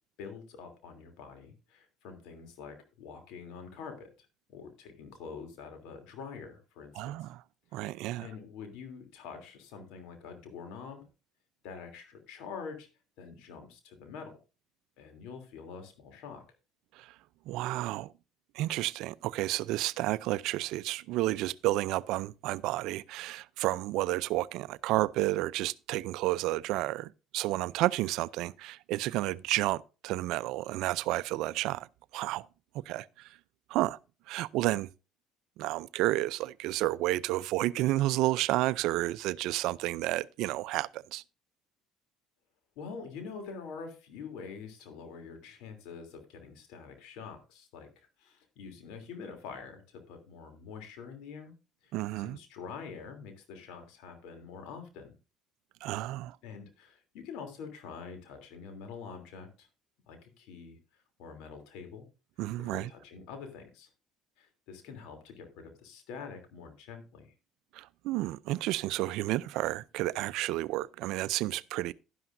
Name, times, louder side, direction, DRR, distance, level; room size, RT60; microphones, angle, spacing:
voice 1, 0.2-4.1 4.5-7.3 7.7-11.1 11.6-12.9 13.2-14.3 15.0-16.4 42.8-51.5 51.8-55.1 56.4-59.7 60.1-60.8 61.2-62.1 62.6-63.9 64.4-67.3, left 5 dB, 75° left, 3.0 m, -46 dB
voice 2, 6.9-7.4 7.7-8.3 16.9-17.1 17.5-18.1 18.5-31.9 32.1-32.5 32.7-33.4 33.7-34.0 34.3-34.9 35.6-41.2 51.9-52.4 55.8-56.4 62.4-62.9 67.7-71.9, right 17 dB, 70° right, 0.4 m, -31 dB
11.5 x 11.0 x 2.6 m
supercardioid pair, 70°, 0 cm